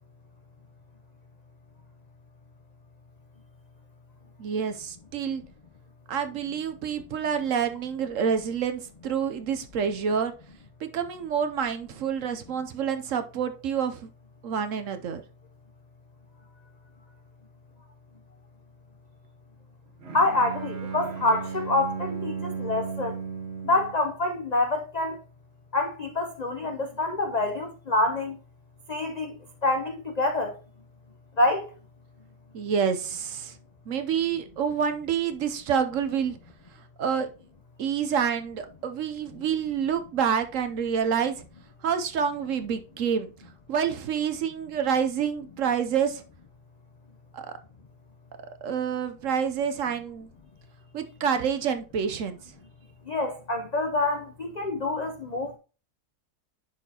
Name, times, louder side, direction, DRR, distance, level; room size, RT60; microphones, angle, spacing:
voice 1, 4.4-5.4 6.1-10.3 10.8-14.1 14.4-15.2 32.5-33.5 33.9-36.4 37.0-37.3 37.8-41.4 41.8-43.3 43.7-46.2 47.3-47.5 48.6-50.3 50.9-52.4, right 7 dB, 65° right, 0.9 m, -28 dB
Bowed string instrument, 20.0-24.1, right 6 dB, 45° right, 1.3 m, -35 dB
voice 2, 20.1-23.2 23.6-25.2 25.7-28.4 28.9-29.3 29.6-30.6 31.4-31.7 53.1-55.6, left 2 dB, 55° left, 0.4 m, -26 dB
10.5 x 4.2 x 2.8 m
omnidirectional pair, 1.7 m